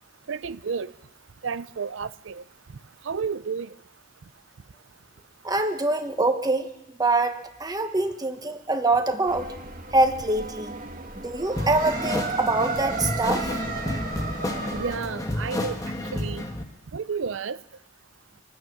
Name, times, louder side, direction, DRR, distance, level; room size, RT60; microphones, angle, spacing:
voice 1, 0.3-0.9 1.4-3.8 14.7-16.5 16.9-17.6, right 5 dB, 75° right, 0.6 m, -32 dB
voice 2, 5.4-6.7 7.0-9.5 9.9-10.8 11.2-13.5, right 2 dB, 20° right, 1.2 m, -24 dB
sound 1, 9.3-14.9, right 3 dB, 45° right, 1.7 m, -34 dB
sound 2, 11.6-16.6, left 1 dB, 20° left, 1.5 m, -30 dB
25.5 x 9.2 x 6.2 m
head